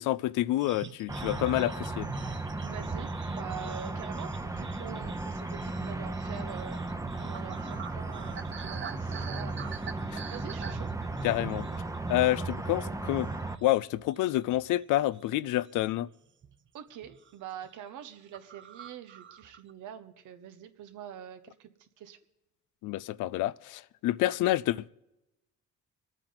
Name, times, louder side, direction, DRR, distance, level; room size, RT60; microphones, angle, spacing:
voice 1, 0.0-2.1 10.1-10.2 11.2-11.7 12.1-13.3 13.6-16.1 22.8-24.9, left 15 dB, 85° left, 0.5 m, -28 dB
sound 1, 0.6-12.3 12.6-12.9 13.3-14.8 15.1-15.9 16.4-16.7 16.9-17.3 17.6-17.7 18.0-18.1 18.3-19.7, right 7 dB, 40° right, 0.7 m, -46 dB
sound 2, 1.1-13.6, right 2 dB, 10° right, 0.8 m, -35 dB
voice 2, 2.6-6.8 7.2-10.9 16.7-22.2, right 9 dB, 85° right, 1.2 m, -45 dB
26.0 x 9.0 x 3.9 m
cardioid pair, 90°, 30 cm